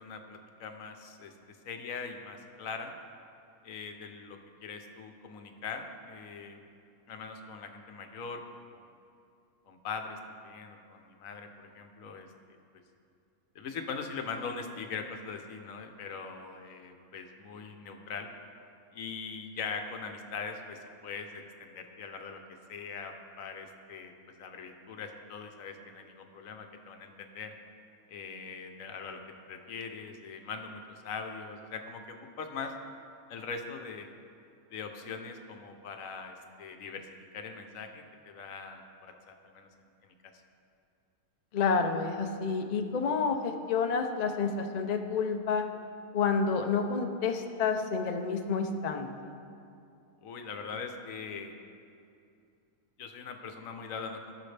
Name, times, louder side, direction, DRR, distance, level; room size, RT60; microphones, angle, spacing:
voice 1, 0.0-3.0 3.6-6.6 7.1-8.9 9.7-12.6 13.5-18.3 18.9-22.4 22.7-24.1 24.4-27.5 28.1-29.2 29.5-32.7 33.3-34.1 34.7-37.1 37.3-39.7 40.0-40.1 50.2-51.6 53.0-54.3, left 5 dB, 70° left, 5 dB, 1.2 m, -41 dB
voice 2, 41.5-45.7 46.1-49.1, left 5 dB, 55° left, 5 dB, 0.4 m, -29 dB
16.0 x 6.3 x 3.3 m, 2.5 s
omnidirectional pair, 1.5 m